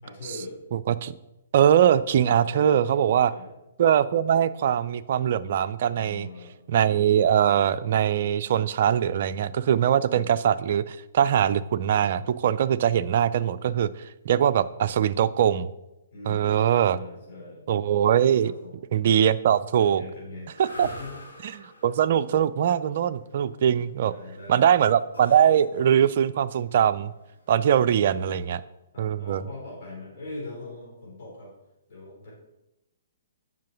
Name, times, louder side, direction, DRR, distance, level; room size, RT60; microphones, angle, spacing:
voice 1, 0.0-0.6 2.2-3.0 3.2-3.5 5.9-6.6 10.1-10.3 16.1-16.6 16.9-17.7 18.4-18.8 19.8-20.5 20.8-21.2 24.0-24.7 28.2-28.4 28.9-31.5 31.9-32.3, left 2 dB, 45° left, -5 dB, 3.6 m, -41 dB
voice 2, 0.7-1.1 1.5-3.3 3.8-6.3 6.7-13.9 14.2-15.7 16.3-17.0 17.7-18.5 18.9-20.0 20.6-20.9 21.4-24.1 24.5-27.1 27.5-28.6 29.0-29.4, right 9 dB, 50° right, 14 dB, 0.4 m, -22 dB
sound 1, 20.4-28.5, left 1 dB, 80° left, 2.4 m, -46 dB
7.5 x 5.7 x 5.9 m, 0.94 s
figure-of-eight pair, 125°, 0 cm